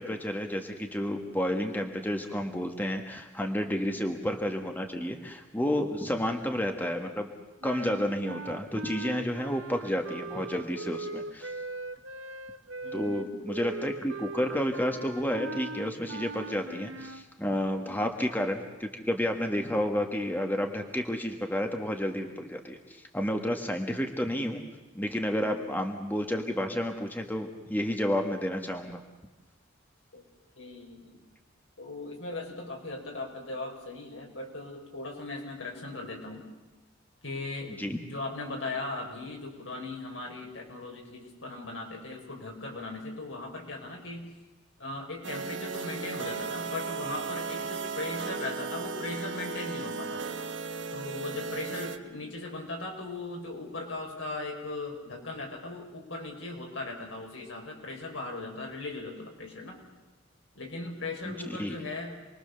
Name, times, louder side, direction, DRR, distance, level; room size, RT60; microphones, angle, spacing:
voice 1, 0.0-7.3 7.6-11.5 12.9-24.6 24.9-29.0 37.8-38.0 61.2-61.8, equal, 10° left, 4 dB, 1.5 m, -31 dB
voice 2, 6.0-6.4 12.8-13.5 17.8-18.1 25.4-25.7 30.1-30.2 30.6-31.2 31.8-36.5 37.2-37.7 38.0-44.3 44.8-50.3 50.9-59.8 60.5-62.2, left 2 dB, 75° left, 1 dB, 5.7 m, -38 dB
sound 1, 7.6-17.3, right 2 dB, 90° right, 1.3 m, -40 dB
sound 2, 45.2-52.0, right 5 dB, 65° right, 1.4 m, -36 dB
28.0 x 21.5 x 6.9 m, 1.2 s
head